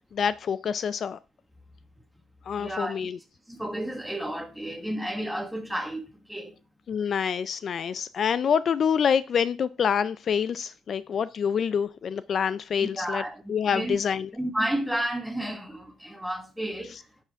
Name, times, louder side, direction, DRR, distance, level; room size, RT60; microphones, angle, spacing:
voice 1, 0.1-1.2 2.5-3.2 6.9-13.2 13.5-14.3 16.9-17.0, left 7 dB, 55° left, 0.4 m, -26 dB
voice 2, 2.6-3.0 3.5-6.5 12.8-13.4 13.7-14.0 14.3-17.0, right 1 dB, 5° right, 1.6 m, -31 dB
9.9 x 5.8 x 3.6 m
supercardioid pair, 75°, 0 cm